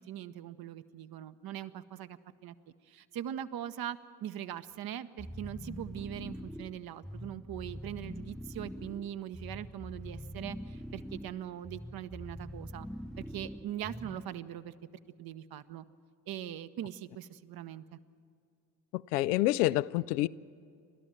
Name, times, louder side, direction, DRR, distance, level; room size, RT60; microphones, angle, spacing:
voice 1, 0.0-2.5 2.9-12.9 13.2-14.7 15.2-15.9 16.3-18.0, right 11 dB, 50° right, 0.9 m, -41 dB
sound 1, 5.2-14.4, equal, ahead, 0.5 m, -44 dB
voice 2, 18.9-20.3, left 17 dB, 75° left, 0.5 m, -28 dB
29.0 x 13.0 x 7.5 m
figure-of-eight pair, 50°, 48 cm